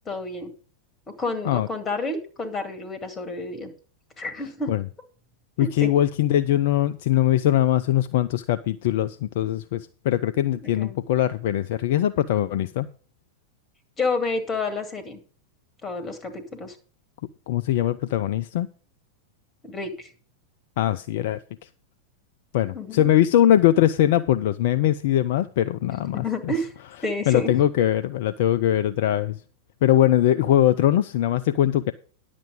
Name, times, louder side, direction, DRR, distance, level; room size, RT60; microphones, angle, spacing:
voice 1, 0.1-0.5 1.2-3.7 4.2-4.7 5.6-5.9 10.8-11.0 14.0-15.2 15.8-16.8 19.6-20.1 22.7-23.0 26.1-26.7 27.0-27.5, left 2 dB, 20° left, 2.2 m, -29 dB
voice 2, 5.6-12.9 17.5-18.7 20.8-21.4 22.5-26.5 27.3-29.4 29.8-31.9, left 12 dB, 50° left, 0.4 m, -21 dB
10.5 x 7.5 x 5.3 m
figure-of-eight pair, 90°, 0 cm